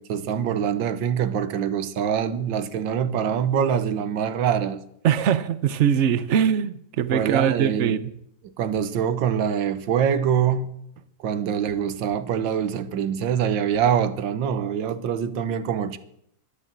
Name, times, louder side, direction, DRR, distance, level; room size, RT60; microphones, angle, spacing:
voice 1, 0.0-4.8 7.1-8.0 8.6-10.7 11.2-16.0, right 8 dB, 80° right, 1.7 m, -24 dB
voice 2, 5.0-8.1, right 8 dB, 60° right, 0.8 m, -22 dB
12.0 x 12.0 x 7.4 m
omnidirectional pair, 2.0 m